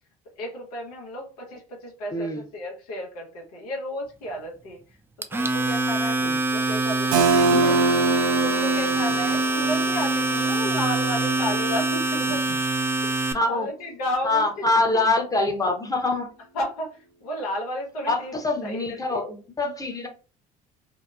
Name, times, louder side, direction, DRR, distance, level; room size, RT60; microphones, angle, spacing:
voice 1, 0.4-4.8 5.2-8.1 8.4-12.4 12.8-12.9 13.2-14.4 16.5-18.3 18.6-19.2, equal, 85° left, 0.8 m, -33 dB
voice 2, 2.1-2.4 6.2-6.4 7.5-7.8 12.5-12.6 13.3-13.7 14.2-16.3 18.1-20.1, left 2 dB, 20° left, 0.7 m, -25 dB
Domestic sounds home sounds, 5.2-13.3, right 2 dB, 10° right, 0.4 m, -24 dB
Keyboard (musical), 7.1-12.7, right 4 dB, 80° right, 0.4 m, -26 dB
2.8 x 2.0 x 2.3 m
hypercardioid pair, 65°, 19 cm